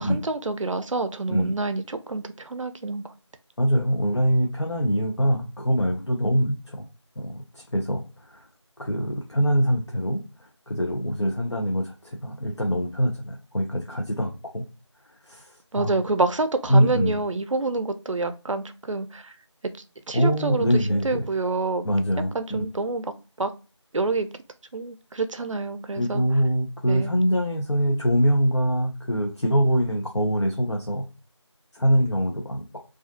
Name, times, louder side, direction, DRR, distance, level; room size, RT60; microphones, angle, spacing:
voice 1, 0.0-3.0 15.7-19.3 20.1-21.9 22.3-23.1 23.4-23.5 23.9-24.3 24.7-26.2 26.9-27.1, right 3 dB, 90° right, 9 dB, 0.4 m, -27 dB
voice 2, 3.6-6.9 7.2-8.5 8.8-14.6 15.2-16.0 16.7-17.2 20.1-21.3 21.8-22.7 26.0-31.1 31.7-32.6, equal, 65° left, 1 dB, 0.6 m, -24 dB
2.3 x 2.3 x 2.5 m, 0.33 s
figure-of-eight pair, 180°, 16 cm